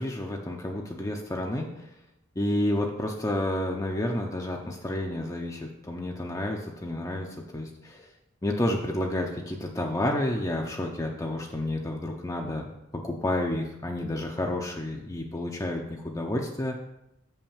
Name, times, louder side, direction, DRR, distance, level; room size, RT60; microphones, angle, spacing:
voice 1, 0.0-1.9 2.4-7.3 7.5-8.1 8.4-12.7 13.0-16.8, left 1 dB, 15° left, 1 dB, 0.6 m, -30 dB
6.2 x 5.6 x 7.1 m, 0.87 s
head